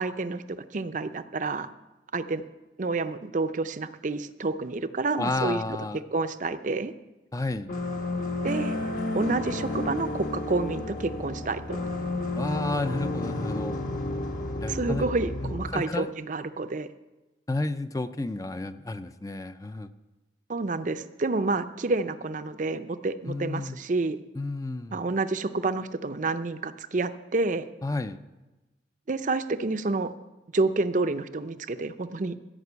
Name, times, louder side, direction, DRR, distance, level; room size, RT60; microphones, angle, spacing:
voice 1, 0.0-1.7 2.1-2.4 2.8-5.6 6.1-6.9 8.4-8.7 9.1-11.9 14.7-16.9 20.5-24.2 24.9-27.7 29.1-30.1 30.5-32.4, right 3 dB, 45° right, 11 dB, 0.5 m, -29 dB
voice 2, 5.2-6.0 7.3-7.7 12.4-13.8 14.6-15.1 15.7-16.1 17.5-19.9 23.3-23.8 24.3-25.0 27.8-28.2, left 2 dB, 20° left, 11 dB, 0.4 m, -31 dB
sound 1, 7.7-15.7, left 2 dB, 50° left, 1.2 m, -31 dB
14.0 x 5.9 x 8.1 m, 1.1 s
head